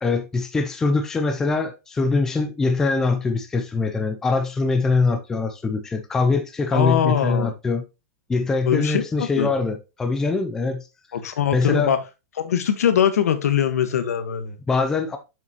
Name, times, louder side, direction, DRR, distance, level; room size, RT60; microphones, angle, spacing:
voice 1, 0.0-7.8 8.3-10.8 11.5-11.9 14.7-15.2, left 3 dB, 5° left, 0.5 m, -23 dB
voice 2, 6.7-7.5 8.7-9.5 11.1-12.0 12.4-14.6, left 9 dB, 85° left, 1.4 m, -22 dB
7.2 x 6.3 x 3.0 m
supercardioid pair, 180°, 8 cm